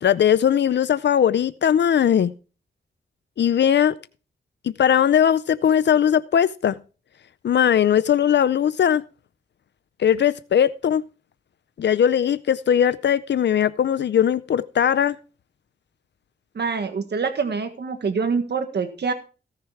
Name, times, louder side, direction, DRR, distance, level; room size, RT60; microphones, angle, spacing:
voice 1, 0.0-2.3 3.4-4.0 4.6-6.8 7.4-9.0 10.0-11.0 11.8-15.2, left 9 dB, 75° left, 16 dB, 0.5 m, -19 dB
voice 2, 16.5-19.1, right 5 dB, 70° right, 7 dB, 1.5 m, -25 dB
17.5 x 6.7 x 4.7 m, 0.35 s
wide cardioid pair, 110°, 18 cm